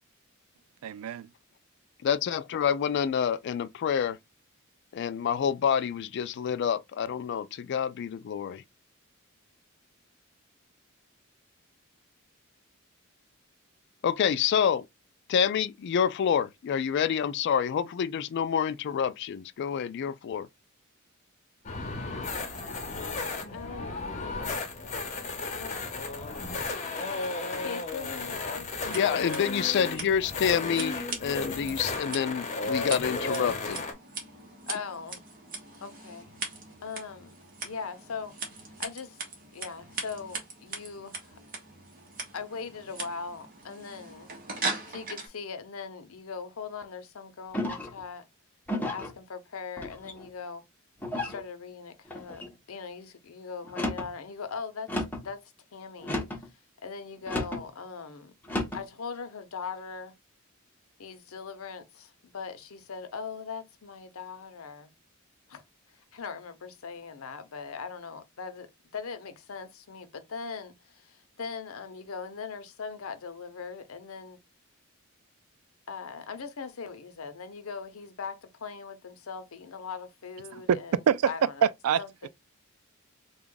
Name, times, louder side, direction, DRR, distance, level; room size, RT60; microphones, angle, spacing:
voice 1, 0.8-1.3 80.5-80.8 81.1-81.3 81.6-82.0, right 8 dB, 85° right, 0.3 m, -25 dB
voice 2, 2.0-4.2 4.9-8.6 14.0-14.9 15.3-20.5 28.9-33.8, left 7 dB, 55° left, 0.3 m, -27 dB
sound 1, 21.6-33.9, left 3 dB, 35° left, 0.9 m, -34 dB
voice 3, 22.7-26.1 27.6-28.7 34.7-35.2 35.8-36.3 36.8-37.3 37.6-38.3 38.8-39.2 39.5-41.4 42.3-44.3 44.6-48.3 48.9-50.6 51.1-52.4 52.7-56.2 56.4-56.5 56.8-58.3 58.7-60.2 61.0-64.9 65.5-65.6 65.9-74.4 75.9-81.7 82.0-82.3, left 5 dB, 80° left, 0.7 m, -40 dB
Scissors, 28.7-45.3, right 3 dB, 40° right, 1.1 m, -40 dB
sound 2, 47.5-48.0 48.7-49.1 49.8-50.3 51.0-51.4 52.1-52.5 53.6-54.1 54.9-55.3 56.0-56.5 57.3-57.6 58.4-58.8, left 1 dB, 10° left, 1.0 m, -33 dB
3.4 x 2.3 x 3.7 m
head